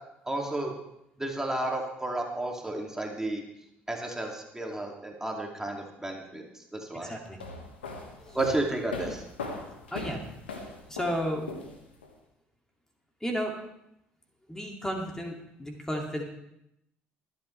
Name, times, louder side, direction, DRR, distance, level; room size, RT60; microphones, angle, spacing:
voice 1, 0.2-0.7 1.2-3.4 3.9-7.1 8.3-9.2, right 2 dB, 10° right, 0 dB, 2.5 m, -32 dB
voice 2, 7.0-7.4 8.3-8.4 9.9-10.2 10.9-11.4 13.2-13.5 14.5-16.2, equal, 10° left, 1 dB, 2.4 m, -33 dB
sound 1, 7.3-12.1, left 3 dB, 90° left, 1.6 m, -39 dB
23.5 x 8.5 x 3.3 m, 0.80 s
hypercardioid pair, 55°, 6 cm